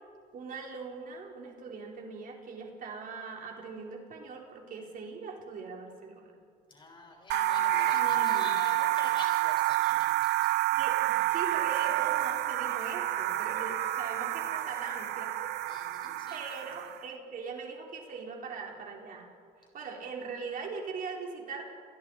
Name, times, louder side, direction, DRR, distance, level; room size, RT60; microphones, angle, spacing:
voice 1, 0.3-6.3 7.3-7.6 7.9-8.5 10.8-15.5 16.3-19.3 19.7-21.7, right 4 dB, 55° right, 0 dB, 4.9 m, -41 dB
voice 2, 6.7-10.6 15.7-16.4, left 2 dB, 30° left, 0 dB, 7.1 m, -47 dB
sound 1, 7.3-17.0, right 14 dB, 80° right, 1.0 m, -29 dB
30.0 x 22.5 x 5.1 m, 2.1 s
cardioid pair, 110°, 17 cm